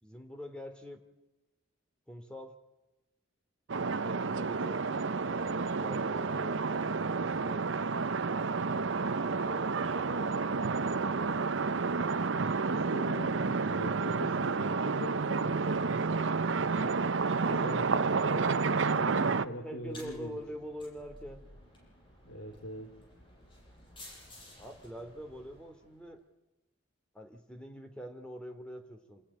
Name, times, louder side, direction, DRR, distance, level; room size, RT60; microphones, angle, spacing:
voice 1, 0.0-1.0 2.1-2.6 3.7-4.8 5.2-6.8 7.1-7.7 9.2-11.6 17.5-17.8 19.5-21.4 24.6-26.2 27.1-29.2, equal, 5° left, 5 dB, 2.5 m, -45 dB
sound 1, 3.7-19.5, right 4 dB, 65° right, 0.7 m, -30 dB
voice 2, 12.3-16.3 16.7-17.1 17.4-18.6 18.9-20.4 22.2-22.9, equal, 80° left, 3 dB, 2.9 m, -43 dB
sound 2, 19.7-26.1, left 1 dB, 25° left, 7.9 m, -54 dB
27.5 x 11.5 x 9.9 m, 1.0 s
head